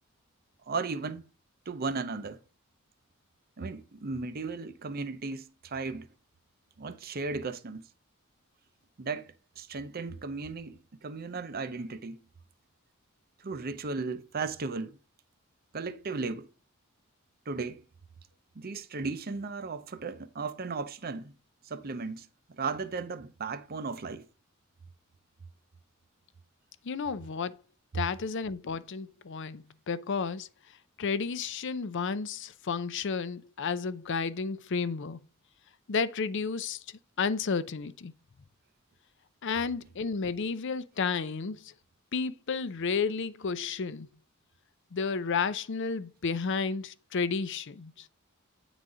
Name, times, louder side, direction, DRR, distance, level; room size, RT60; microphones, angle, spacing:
voice 1, 0.7-1.3 1.7-2.4 3.6-6.1 6.8-7.8 9.0-12.2 13.4-15.0 15.7-16.5 17.5-17.8 18.6-21.3 21.6-22.3 22.6-24.3, right 4 dB, 45° right, 0.7 m, -35 dB
voice 2, 26.8-27.6 27.9-30.5 31.0-35.2 35.9-38.1 39.4-41.7 42.1-44.1 44.9-48.1, left 5 dB, 55° left, 0.5 m, -32 dB
9.0 x 4.0 x 4.8 m
head